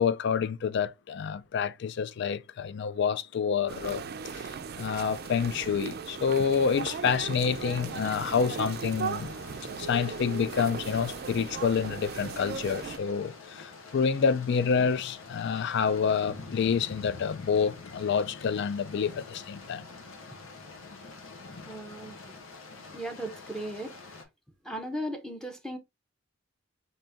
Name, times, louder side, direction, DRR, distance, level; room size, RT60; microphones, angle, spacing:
voice 1, 0.0-4.0 4.3-9.3 9.8-19.8, left 6 dB, 55° left, 0.3 m, -28 dB
sound 1, 3.7-13.0, right 5 dB, 50° right, 0.4 m, -37 dB
sound 2, 7.5-24.2, left 3 dB, 85° left, 1.0 m, -46 dB
voice 2, 21.7-22.4 22.9-24.0 24.6-25.8, right 1 dB, 5° left, 0.6 m, -37 dB
4.0 x 2.8 x 3.4 m
head